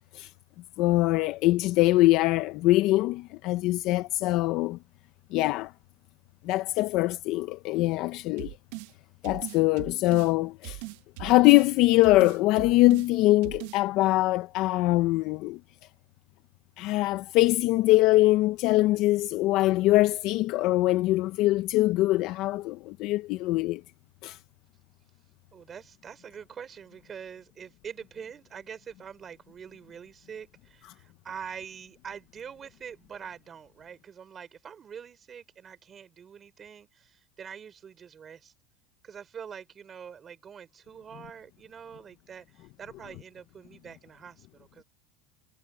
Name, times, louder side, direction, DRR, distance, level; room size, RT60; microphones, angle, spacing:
voice 1, 0.8-4.8 5.3-5.7 6.4-8.5 9.2-10.8 11.2-15.6 16.8-23.8 24.2-24.4, left 18 dB, 50° left, 0.7 m, -23 dB
sound 1, 8.4-8.9 9.2-10.3 10.6-11.7 12.0-13.1 13.4-13.8, right 22 dB, 70° right, 1.3 m, -39 dB
voice 2, 25.5-38.5 39.0-44.8, right 7 dB, 25° right, 4.1 m, -44 dB
supercardioid pair, 145°, 0 cm